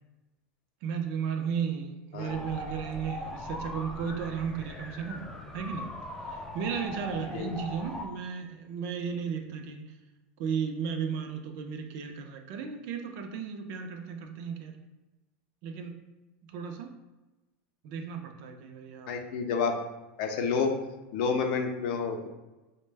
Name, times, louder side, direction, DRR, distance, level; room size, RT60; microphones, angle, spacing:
voice 1, 0.8-5.3 5.5-5.9 6.3-9.8 10.4-14.7 15.6-16.0 16.5-16.9 17.8-19.1, right 6 dB, 50° right, 5 dB, 0.5 m, -34 dB
voice 2, 2.1-2.4 7.3-7.5 19.1-19.8 20.2-20.7 21.1-22.3, left 5 dB, 60° left, 4 dB, 0.5 m, -29 dB
sound 1, 2.3-8.1, left 1 dB, 10° left, 0.3 m, -40 dB
4.1 x 2.1 x 3.3 m, 1.1 s
supercardioid pair, 150°, 6 cm